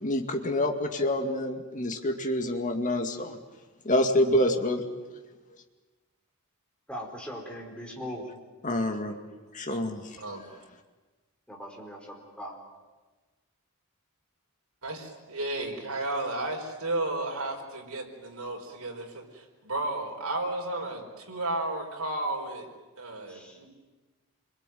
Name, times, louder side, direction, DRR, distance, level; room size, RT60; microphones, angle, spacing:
voice 1, 0.0-3.4 3.8-4.8 8.6-9.1 9.5-10.0, left 1 dB, 35° left, 4 dB, 2.3 m, -27 dB
voice 2, 6.9-8.3 11.5-12.6 23.3-23.6, equal, 5° left, 0 dB, 4.6 m, -40 dB
voice 3, 10.2-10.5 14.8-22.7 23.0-23.7, right 2 dB, 75° right, 0 dB, 4.8 m, -33 dB
27.0 x 22.0 x 9.4 m, 1.3 s
head